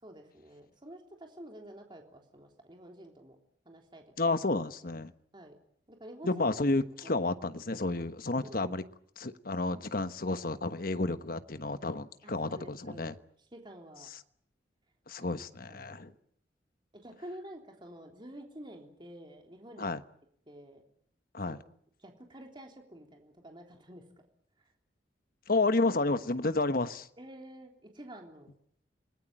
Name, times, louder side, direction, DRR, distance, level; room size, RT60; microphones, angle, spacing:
voice 1, 0.0-3.4 3.6-4.0 5.3-5.5 5.9-6.4 7.0-7.2 8.4-8.7 12.2-13.2 13.5-14.1 15.2-15.4 15.7-16.1 17.0-19.9 20.5-20.8 21.5-21.6 22.0-24.0 27.2-28.5, right 1 dB, 25° right, 3.4 m, -49 dB
voice 2, 4.2-5.1 6.2-8.8 9.2-13.1 15.1-16.1 19.8-20.0 21.3-21.6 25.5-27.1, left 2 dB, 55° left, 1.2 m, -31 dB
28.5 x 19.0 x 8.8 m
head